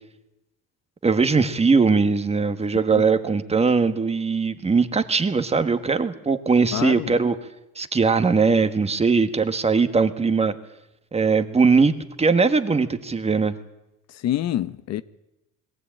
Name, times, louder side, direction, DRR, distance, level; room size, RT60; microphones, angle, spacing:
voice 1, 1.0-7.4 7.7-10.5 11.1-11.9 12.2-13.6, right 4 dB, 20° right, 1.3 m, -20 dB
voice 2, 6.7-7.1 14.2-15.0, left 12 dB, 50° left, 0.8 m, -26 dB
21.5 x 16.0 x 8.8 m
cardioid pair, 130°, 33 cm